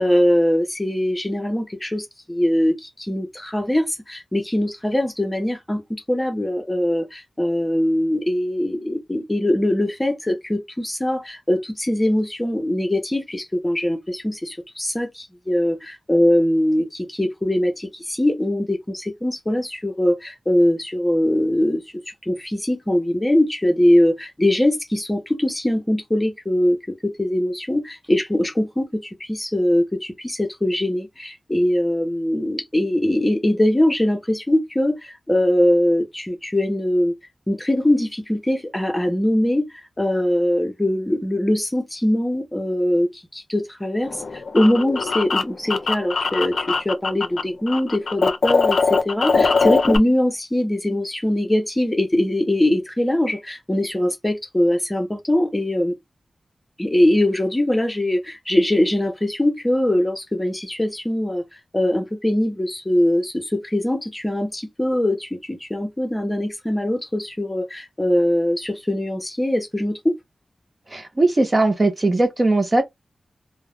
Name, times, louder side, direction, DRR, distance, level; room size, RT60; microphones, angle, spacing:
voice 1, 0.0-5.8 6.1-37.1 37.5-56.0 56.8-61.4 61.7-70.1, left 1 dB, 15° left, 0.8 m, -22 dB
sound 1, 44.0-47.4 47.7-50.0, left 4 dB, 70° left, 0.4 m, -21 dB
voice 2, 70.9-72.8, right 2 dB, 30° right, 0.6 m, -19 dB
2.4 x 2.1 x 3.1 m
wide cardioid pair, 90°, 0 cm